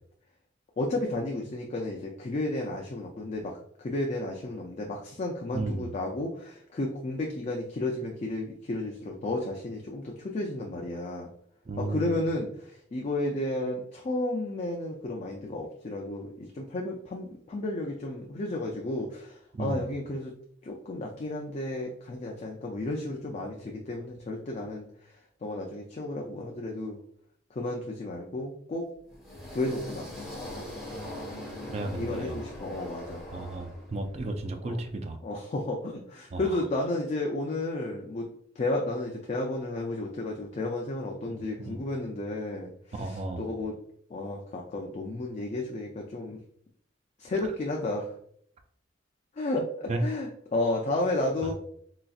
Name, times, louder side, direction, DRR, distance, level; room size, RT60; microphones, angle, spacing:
voice 1, 0.8-11.3 11.8-20.4 20.6-25.1 25.4-27.0 27.5-28.9 29.5-30.3 32.0-33.2 34.7-34.8 35.2-38.3 38.6-43.7 44.1-46.4 47.2-48.1 49.4-51.5, left 2 dB, 35° left, 0 dB, 0.4 m, -32 dB
voice 2, 5.5-5.9 11.7-12.1 19.5-19.8 31.7-32.3 33.3-35.2 36.3-36.6 41.3-41.8 42.9-43.4 49.9-50.0 51.4-51.5, right 2 dB, 35° right, 6 dB, 0.4 m, -34 dB
sound 1, 29.1-34.3, left 1 dB, ahead, 1.3 m, -41 dB
3.9 x 2.4 x 2.3 m, 0.65 s
head